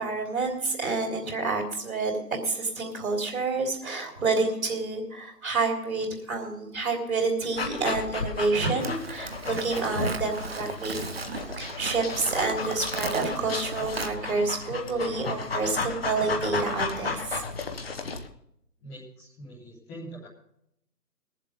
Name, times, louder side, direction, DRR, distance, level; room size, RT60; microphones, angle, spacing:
voice 1, 0.0-2.2 2.4-11.0 11.6-17.4, right 3 dB, 55° right, 2 dB, 3.7 m, -28 dB
Dog, 7.5-18.3, left 4 dB, 40° left, 1.0 m, -34 dB
Livestock farm animals working animals, 8.8-14.1, right 4 dB, 40° right, 0.7 m, -37 dB
voice 2, 18.8-20.3, right 1 dB, 5° left, -7 dB, 0.9 m, -43 dB
20.5 x 7.5 x 5.2 m, 0.76 s
figure-of-eight pair, 150°, 49 cm